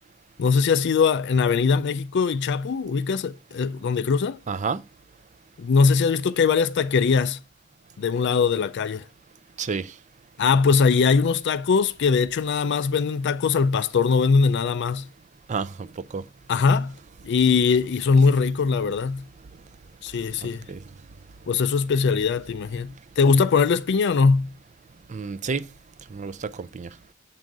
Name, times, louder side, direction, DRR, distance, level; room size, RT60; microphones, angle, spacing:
voice 1, 0.4-4.4 5.6-7.4 8.0-9.0 10.4-15.1 16.5-16.9 17.2-19.3 20.0-20.6 21.5-24.5, left 5 dB, 55° left, 0.4 m, -21 dB
voice 2, 4.5-4.8 9.6-9.9 15.5-15.9 16.1-16.2 20.7-20.8 25.1-25.6 26.1-26.9, right 5 dB, 35° right, 0.4 m, -29 dB
7.4 x 3.9 x 4.6 m
head